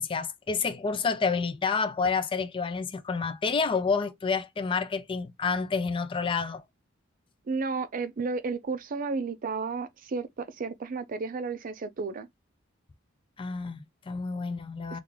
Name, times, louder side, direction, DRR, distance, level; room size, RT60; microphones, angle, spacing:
voice 1, 0.0-6.6 13.4-15.0, left 5 dB, 25° left, 0.4 m, -29 dB
voice 2, 7.5-12.3 14.9-15.0, right 4 dB, 45° right, 0.4 m, -32 dB
3.5 x 2.4 x 3.1 m
head